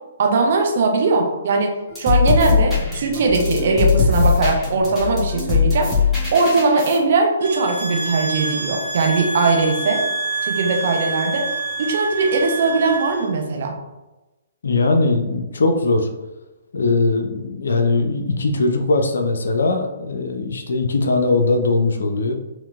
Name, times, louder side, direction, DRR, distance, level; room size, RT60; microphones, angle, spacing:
voice 1, 0.2-5.9 6.3-10.0 10.4-11.5 11.8-13.8, right 3 dB, 50° right, 2 dB, 0.6 m, -19 dB
sound 1, 1.9-7.0, left 5 dB, 5° left, 0.9 m, -20 dB
sound 2, 7.4-13.3, right 3 dB, 75° right, 1.0 m, -27 dB
voice 2, 14.6-16.1 16.7-22.3, left 3 dB, 65° left, 5 dB, 0.4 m, -20 dB
4.3 x 2.0 x 2.3 m, 1.0 s
figure-of-eight pair, 125°, 0 cm